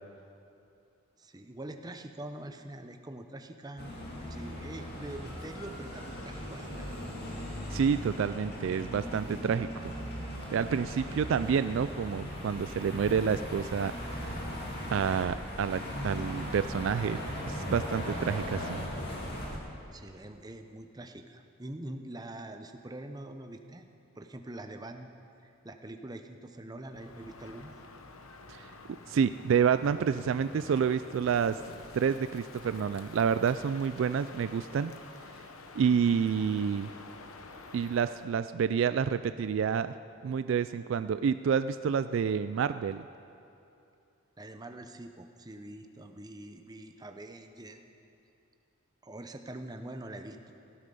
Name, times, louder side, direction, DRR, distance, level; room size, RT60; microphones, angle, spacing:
voice 1, 1.2-4.0 4.3-6.9 19.9-23.9 24.1-25.1 25.6-27.8 44.4-47.8 49.0-50.5, right 1 dB, 20° right, 6 dB, 0.7 m, -44 dB
sound 1, 3.8-19.6, equal, 50° left, 2.2 m, -38 dB
voice 2, 7.7-9.9 10.5-13.9 14.9-17.2 17.5-18.8 28.5-28.7 29.1-31.6 31.9-34.9 35.7-36.9 37.7-39.9 40.2-43.0, right 7 dB, 65° right, 13 dB, 0.3 m, -28 dB
Crow, 26.9-38.3, left 3 dB, 90° left, 0.9 m, -49 dB
17.0 x 12.0 x 5.4 m, 2.6 s
head